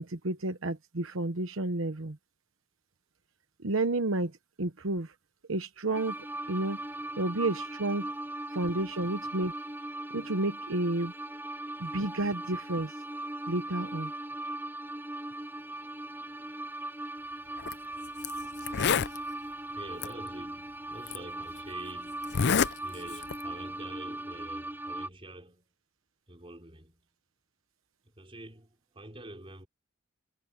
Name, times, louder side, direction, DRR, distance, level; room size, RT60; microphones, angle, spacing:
voice 1, 0.0-2.2 3.6-5.1 5.5-6.2 6.5-6.8 7.2-8.1 8.5-9.5 10.1-11.1 11.8-12.9 13.5-14.1, right 2 dB, 75° right, 1.1 m, -31 dB
sound 1, 5.9-25.1, right 1 dB, 10° right, 3.8 m, -39 dB
voice 2, 15.8-16.6 19.7-25.7 26.3-27.1 28.0-29.7, right 1 dB, 25° right, 5.2 m, -48 dB
Zipper (clothing), 17.6-17.7 18.2-18.3 18.6-19.2 20.0-20.1 21.1-21.2 22.2-22.7 23.1-23.4, left 6 dB, 55° left, 0.5 m, -26 dB
head